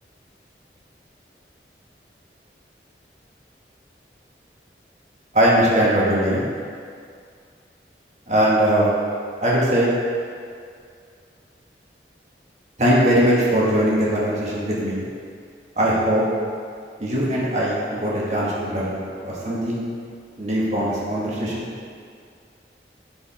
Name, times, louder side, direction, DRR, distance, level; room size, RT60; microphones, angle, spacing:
voice 1, 5.3-6.5 8.3-8.9 9.4-9.9 12.8-15.0 15.8-16.2 17.0-19.8 20.4-21.7, equal, 40° right, -6 dB, 1.7 m, -20 dB
10.0 x 5.4 x 3.6 m, 2.2 s
head